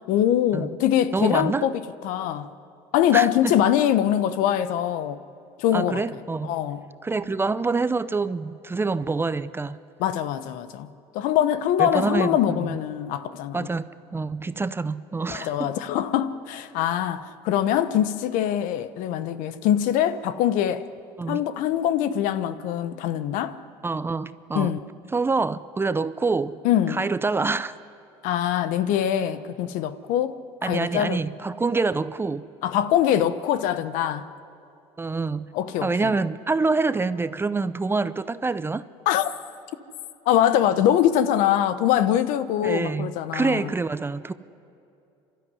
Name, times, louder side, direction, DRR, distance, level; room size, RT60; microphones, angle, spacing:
voice 1, 0.1-2.5 2.9-5.2 5.6-6.0 6.4-6.8 10.0-10.9 11.1-13.7 15.3-20.8 21.3-23.6 24.5-24.8 26.6-27.0 28.2-31.2 32.6-34.3 35.5-36.1 39.1-39.3 40.3-43.7, left 11 dB, 75° left, 1.0 m, -23 dB
voice 2, 1.1-1.6 3.1-3.6 5.7-6.6 7.0-9.8 11.8-12.8 13.5-15.7 21.2-21.4 23.8-24.7 25.1-26.6 26.9-27.7 30.6-32.5 35.0-35.5 35.8-38.8 42.6-44.3, right 3 dB, 15° right, 0.6 m, -26 dB
28.5 x 12.5 x 9.8 m
supercardioid pair, 95°, 14 cm